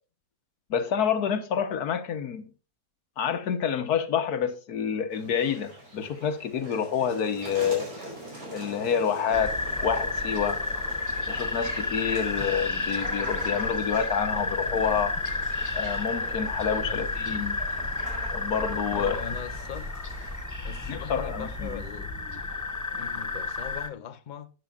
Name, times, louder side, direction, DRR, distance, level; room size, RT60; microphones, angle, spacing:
voice 1, 0.7-2.5 3.2-7.9 8.5-9.6 9.8-10.6 11.3-15.2 15.7-17.6 18.3-19.2 20.9-21.8, left 7 dB, 75° left, 1.5 m, -28 dB
sound 1, 5.1-20.4, right 1 dB, 80° right, 5.6 m, -42 dB
sound 2, 9.3-23.9, left 2 dB, 25° left, 0.4 m, -31 dB
sound 3, 14.3-23.8, right 2 dB, 5° left, 3.9 m, -53 dB
voice 2, 18.9-19.9 20.6-22.1 22.9-24.5, left 8 dB, 40° left, 0.8 m, -40 dB
13.0 x 9.0 x 2.4 m
omnidirectional pair, 1.6 m